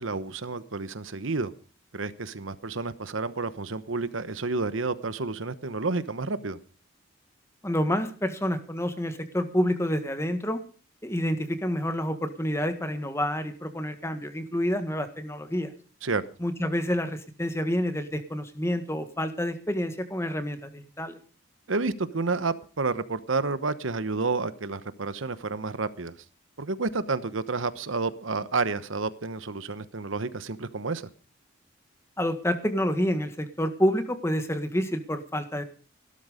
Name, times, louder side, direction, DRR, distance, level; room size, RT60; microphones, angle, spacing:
voice 1, 0.0-1.5 1.9-6.6 16.0-16.2 21.7-26.1 26.6-31.0, right 3 dB, 75° right, 14 dB, 1.1 m, -30 dB
voice 2, 7.6-10.6 11.0-15.7 16.4-21.2 32.2-35.6, equal, 15° left, 9 dB, 1.6 m, -28 dB
16.0 x 12.5 x 5.1 m, 0.37 s
head